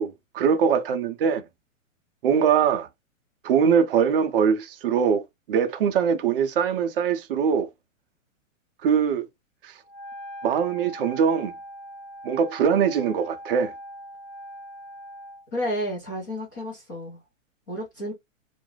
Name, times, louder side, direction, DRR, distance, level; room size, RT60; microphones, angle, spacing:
voice 1, 0.0-1.4 2.2-2.9 3.4-5.2 5.5-7.7 8.8-9.3 9.6-9.7 10.4-11.5 12.2-13.7, right 7 dB, 45° right, 0.5 m, -22 dB
Wind instrument woodwind instrument, 9.8-15.5, equal, 80° left, 1.1 m, -41 dB
voice 2, 15.5-17.2 17.7-18.1, equal, 15° left, 0.4 m, -31 dB
2.3 x 2.0 x 3.0 m
hypercardioid pair, 155°, 41 cm